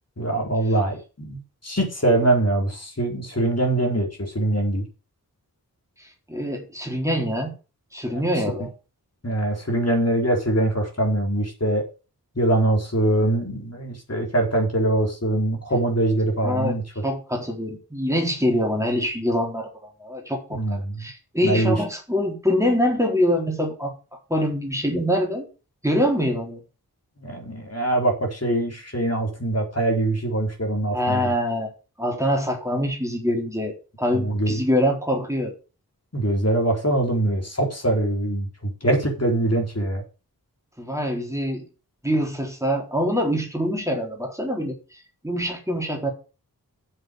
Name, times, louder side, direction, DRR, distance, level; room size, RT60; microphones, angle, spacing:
voice 1, 0.2-4.8 9.2-11.8 12.4-16.8 20.5-21.0 21.4-21.8 27.2-31.3 34.1-34.6 36.1-40.0, right 1 dB, 40° left, 1 dB, 4.1 m, -23 dB
voice 2, 6.0-7.5 7.9-8.7 16.4-16.8 17.0-19.7 20.0-23.9 24.3-25.5 25.8-26.6 30.9-31.7 32.0-35.5 40.8-41.6 42.0-46.1, equal, 10° right, 0 dB, 4.0 m, -24 dB
7.7 x 7.5 x 7.7 m, 0.33 s
wide cardioid pair, 55°, 37 cm